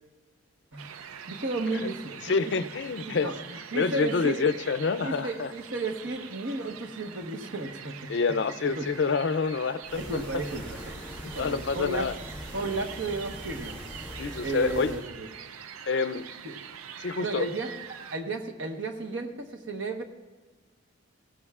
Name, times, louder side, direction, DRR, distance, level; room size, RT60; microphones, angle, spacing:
sound 1, 0.8-18.2, right 8 dB, 85° right, 0.5 m, -44 dB
voice 1, 1.3-2.4 3.0-4.4 5.0-8.1 8.8-8.9 9.9-11.0 11.3-12.1 12.5-13.8 14.4-15.3 16.4-16.5 17.2-20.0, right 2 dB, 60° right, 5 dB, 1.1 m, -33 dB
voice 2, 2.2-3.3 3.7-5.5 8.1-10.2 11.2-12.1 14.2-14.9 15.9-16.3 17.0-17.5, left 4 dB, 55° left, 14 dB, 0.4 m, -27 dB
sound 2, 9.8-15.0, equal, 10° right, 2.8 m, -41 dB
17.0 x 16.5 x 2.4 m, 1.3 s
head